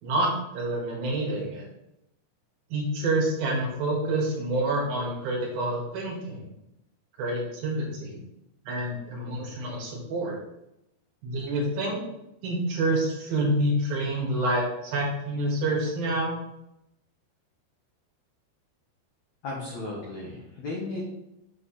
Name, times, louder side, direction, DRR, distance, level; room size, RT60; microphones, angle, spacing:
voice 1, 0.0-1.7 2.7-6.5 7.2-8.2 8.6-10.4 11.2-12.0 12.4-16.4, right 1 dB, 65° right, -1 dB, 2.9 m, -27 dB
voice 2, 19.4-21.0, left 2 dB, 70° left, -4 dB, 1.7 m, -35 dB
7.4 x 3.2 x 5.6 m, 0.86 s
omnidirectional pair, 4.9 m